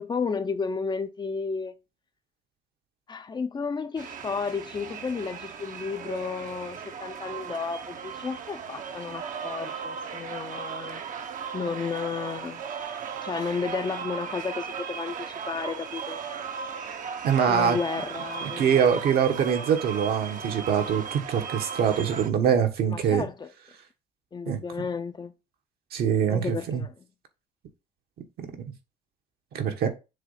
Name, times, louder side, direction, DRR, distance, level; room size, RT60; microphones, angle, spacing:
voice 1, 0.0-1.8 3.1-11.0 11.5-12.6 13.2-16.2 17.5-19.0 22.9-23.5 24.3-25.3 26.3-26.9, left 5 dB, 25° left, 0.7 m, -32 dB
sound 1, 4.0-22.3, right 6 dB, 50° right, 1.0 m, -37 dB
voice 2, 17.2-17.8 18.4-23.3 24.5-24.6 25.9-26.8 28.4-28.6 29.5-29.9, right 8 dB, 65° right, 1.6 m, -24 dB
7.3 x 3.3 x 5.7 m
cardioid pair, 110°, 17 cm